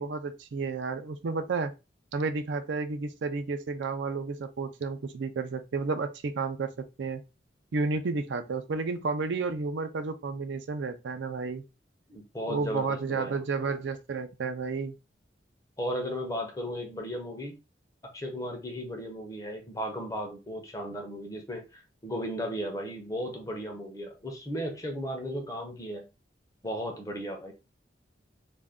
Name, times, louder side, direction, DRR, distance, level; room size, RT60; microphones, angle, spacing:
voice 1, 0.0-1.7 2.1-7.2 7.7-11.6 12.5-15.0, right 4 dB, 80° right, 0.4 m, -31 dB
voice 2, 12.1-13.4 15.8-17.5 18.1-26.0 26.6-27.5, equal, 20° left, 0.6 m, -35 dB
2.5 x 2.2 x 3.4 m
head